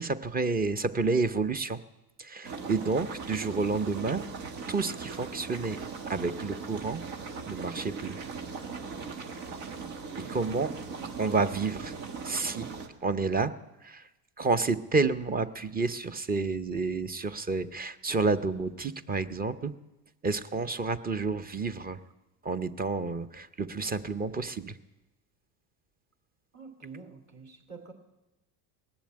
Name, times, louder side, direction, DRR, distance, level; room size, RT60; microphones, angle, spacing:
voice 1, 0.0-1.8 2.2-4.2 4.7-5.8 6.1-7.0 7.5-8.2 10.3-10.7 11.2-11.9 12.2-12.7 13.0-13.5 13.8-14.0 14.4-19.7 20.2-22.0 22.4-24.8, right 4 dB, 20° right, 13 dB, 0.6 m, -30 dB
sound 1, 2.4-12.9, right 5 dB, 75° right, 1.7 m, -39 dB
voice 2, 26.5-27.9, right 4 dB, 35° right, 3 dB, 2.8 m, -47 dB
19.0 x 7.2 x 8.8 m, 1.0 s
supercardioid pair, 100°, 46 cm